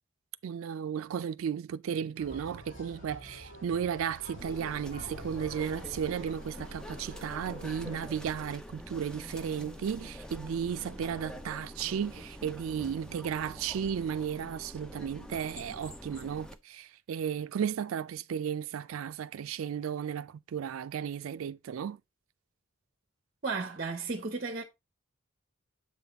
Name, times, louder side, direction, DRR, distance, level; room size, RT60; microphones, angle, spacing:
voice 1, 0.4-22.0, right 8 dB, 80° right, 0.3 m, -34 dB
sound 1, 2.2-8.0, equal, 60° left, 4.0 m, -48 dB
sound 2, 4.4-16.6, equal, 5° left, 0.4 m, -45 dB
voice 2, 23.4-24.6, right 4 dB, 40° right, 0.7 m, -34 dB
7.4 x 4.0 x 3.4 m
head